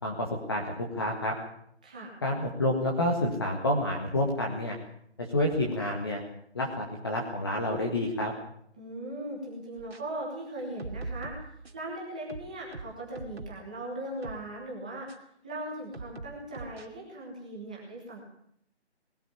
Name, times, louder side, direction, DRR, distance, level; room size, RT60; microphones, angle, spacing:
voice 1, 0.0-1.3 2.2-4.8 5.3-6.2 6.5-8.3, left 1 dB, 20° left, 0 dB, 1.8 m, -29 dB
voice 2, 1.8-2.1 8.8-18.2, right 1 dB, 5° right, -3 dB, 1.4 m, -39 dB
sound 1, 9.8-10.0 10.6-11.9 12.3-13.7 14.2-14.5 15.1-15.2 15.9-16.9, right 3 dB, 60° right, 2.9 m, -42 dB
20.5 x 13.0 x 10.0 m, 0.70 s
figure-of-eight pair, 175°, 34 cm